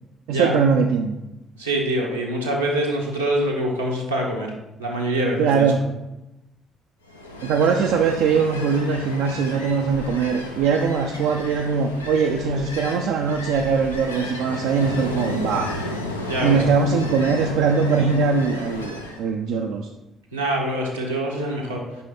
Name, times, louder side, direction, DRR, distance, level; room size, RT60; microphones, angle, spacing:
voice 1, 0.3-1.2 5.4-5.8 7.4-15.7 16.4-19.9, right 5 dB, 65° right, 3 dB, 0.4 m, -21 dB
voice 2, 1.6-4.5 4.8-5.6 16.3-16.6 20.3-21.8, right 1 dB, 90° right, -4 dB, 1.1 m, -24 dB
Ocean, 7.1-19.2, left 2 dB, 90° left, 0.4 m, -33 dB
5.5 x 5.2 x 4.2 m, 0.97 s
figure-of-eight pair, 45°, 0 cm